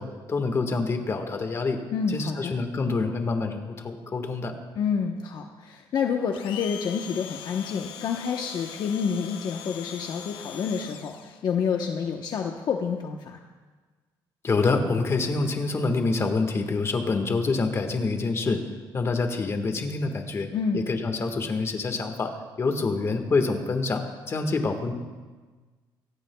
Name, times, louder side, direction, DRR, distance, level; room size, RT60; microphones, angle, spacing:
voice 1, 0.0-1.8 2.1-4.5 14.4-18.6 18.9-20.5 20.7-24.9, left 3 dB, 30° left, 5 dB, 1.6 m, -26 dB
voice 2, 1.9-2.5 4.8-13.4 20.5-20.8, left 6 dB, 55° left, 2 dB, 1.0 m, -28 dB
Domestic sounds home sounds, 6.3-11.4, left 10 dB, 85° left, 0.8 m, -41 dB
23.5 x 17.0 x 2.3 m, 1.4 s
cardioid pair, 120°, 9 cm